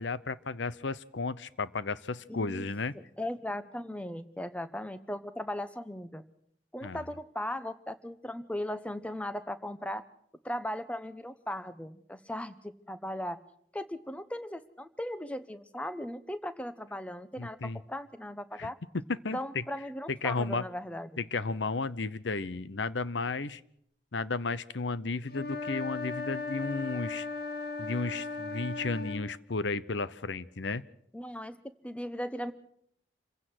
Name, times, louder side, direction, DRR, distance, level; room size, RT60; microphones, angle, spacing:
voice 1, 0.0-3.0 6.8-7.0 17.4-17.8 18.6-18.7 19.2-19.6 20.1-20.6 21.2-23.6 24.1-27.3 27.8-30.9, left 3 dB, 80° left, 17 dB, 0.8 m, -33 dB
voice 2, 2.3-2.7 3.2-6.2 6.7-10.0 10.4-13.4 13.7-17.6 17.9-18.7 19.3-21.1 31.1-31.6 31.8-32.5, left 1 dB, 5° left, 12 dB, 0.9 m, -37 dB
sound 1, 25.3-29.3, left 3 dB, 55° left, 2.4 m, -37 dB
27.5 x 16.0 x 6.2 m, 0.70 s
head